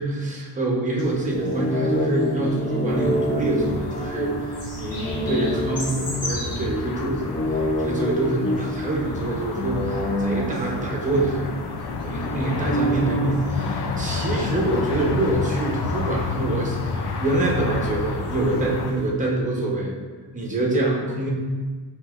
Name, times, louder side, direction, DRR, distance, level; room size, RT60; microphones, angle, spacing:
voice 1, 0.0-11.4 12.0-19.9 20.3-21.3, right 2 dB, 20° right, -3 dB, 0.8 m, -25 dB
sound 1, 1.0-19.1, left 2 dB, 40° left, 1.2 m, -42 dB
sound 2, 1.3-6.8 7.2-11.8 12.2-13.4, equal, 20° left, 0.5 m, -28 dB
sound 3, 2.9-18.9, left 4 dB, 70° left, 0.5 m, -30 dB
5.3 x 2.9 x 2.4 m, 1.4 s
cardioid pair, 115°, 40 cm